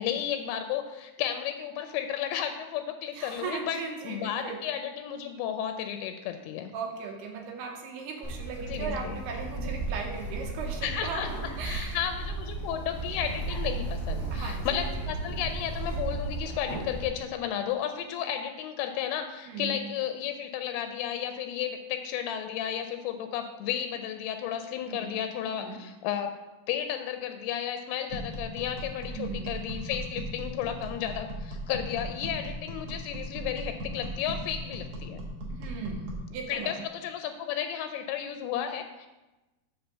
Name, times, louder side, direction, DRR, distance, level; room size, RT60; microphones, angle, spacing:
voice 1, 0.0-3.8 4.0-6.7 8.7-9.2 10.8-11.3 11.6-26.3 26.7-35.2 36.5-39.1, left 9 dB, 85° left, 7 dB, 2.5 m, -33 dB
voice 2, 3.1-4.6 6.7-11.2 11.6-12.0 14.3-14.8 19.5-19.8 24.8-25.1 25.5-25.8 29.1-29.5 35.5-36.8, right 5 dB, 80° right, 1 dB, 3.0 m, -37 dB
Bird, 8.2-17.0, right 2 dB, 30° right, 0.4 m, -34 dB
sound 1, 28.1-36.3, right 1 dB, 60° right, 1.4 m, -37 dB
7.9 x 3.7 x 6.7 m, 1.1 s
omnidirectional pair, 4.6 m